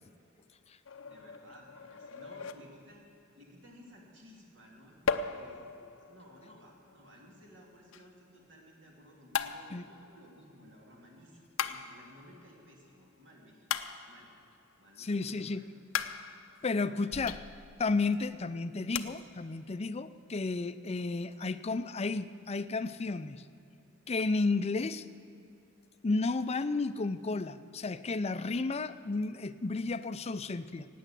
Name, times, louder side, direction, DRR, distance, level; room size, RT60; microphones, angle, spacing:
sound 1, 0.9-3.1 5.1-8.1 9.3-10.8 11.6-12.7 13.7-14.6 15.9-17.9 18.2-18.3 18.9-19.0, left 6 dB, 80° left, 0.6 m, -38 dB
voice 1, 1.0-3.0 3.3-5.7 6.0-13.7 14.1-14.3 14.8-15.6 16.1-16.3 16.8-17.1, equal, 65° right, -1 dB, 3.1 m, -56 dB
voice 2, 15.0-15.6 16.6-17.4 17.8-23.4 24.1-25.0 26.0-30.9, left 3 dB, 30° left, 13 dB, 0.5 m, -32 dB
16.5 x 9.3 x 7.6 m, 2.5 s
head